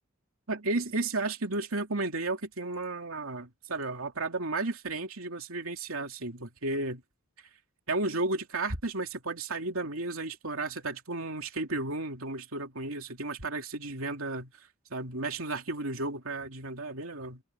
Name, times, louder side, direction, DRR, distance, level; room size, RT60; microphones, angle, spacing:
voice 1, 0.5-7.0 7.9-14.5 14.9-17.4, right 2 dB, 70° right, 2.9 m, -33 dB
head